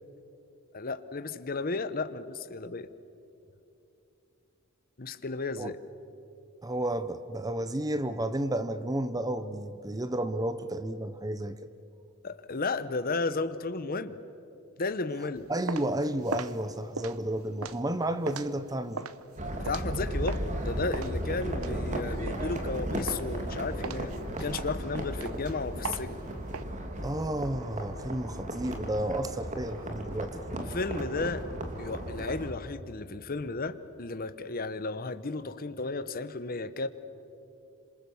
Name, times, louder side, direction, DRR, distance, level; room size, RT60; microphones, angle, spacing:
voice 1, 0.7-2.9 5.0-5.8 12.2-14.2 14.8-15.4 19.5-26.2 30.5-31.4 31.8-36.9, left 3 dB, 45° left, 12 dB, 1.0 m, -34 dB
voice 2, 6.6-11.6 15.5-19.0 27.0-30.8, right 1 dB, 15° right, 11 dB, 0.7 m, -32 dB
sound 1, 15.4-20.6 20.9-22.8 23.1-23.5 23.8-26.6, right 5 dB, 85° right, 0.9 m, -39 dB
sound 2, 19.4-32.5, right 1 dB, 35° right, 2.7 m, -35 dB
27.0 x 26.5 x 7.1 m, 2.8 s
head